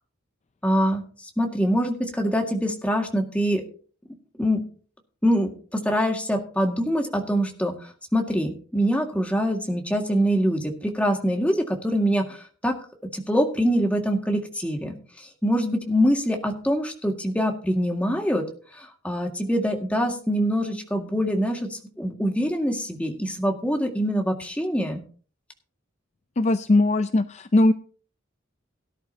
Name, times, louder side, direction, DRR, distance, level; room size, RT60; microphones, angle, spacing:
voice 1, 0.6-1.0 1.4-3.6 4.4-4.6 5.2-12.7 13.1-18.4 18.7-25.0, equal, 5° left, 2 dB, 2.0 m, -24 dB
voice 2, 26.4-27.7, left 2 dB, 35° left, 11 dB, 0.5 m, -19 dB
17.5 x 11.0 x 2.9 m, 0.41 s
head